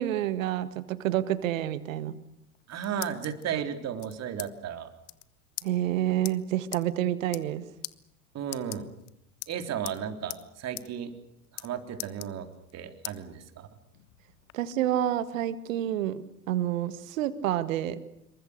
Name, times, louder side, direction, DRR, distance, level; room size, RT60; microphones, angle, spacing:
voice 1, 0.0-2.2 5.6-7.6 14.5-18.0, right 12 dB, 60° right, 14 dB, 1.9 m, -28 dB
sound 1, 2.4-3.4 4.0-4.5 4.8-4.9 5.0-5.2 5.6-5.7 6.2-6.3 6.7-6.8 7.2-7.6 7.8-7.9 8.4-9.1 9.4-10.0 10.3-10.4 10.8-10.9 11.2-11.7 12.0-12.7 13.0-13.2 13.7-14.5, left 21 dB, 55° left, 1.2 m, -40 dB
voice 2, 2.7-4.9 8.3-8.9 9.5-11.1 11.5-12.5 12.7-13.7, right 8 dB, 35° right, 7 dB, 3.7 m, -34 dB
27.0 x 23.0 x 6.6 m, 0.83 s
figure-of-eight pair, 80°, 43 cm